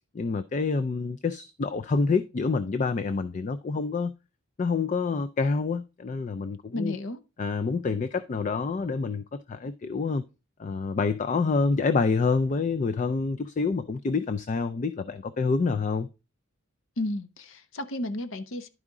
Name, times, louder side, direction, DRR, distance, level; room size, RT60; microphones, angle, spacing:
voice 1, 0.1-4.1 4.6-7.0 7.4-10.2 10.6-16.1, left 4 dB, 35° left, 0.3 m, -27 dB
voice 2, 6.7-7.2 17.0-18.7, left 1 dB, 65° left, 0.7 m, -32 dB
11.0 x 4.9 x 3.7 m
head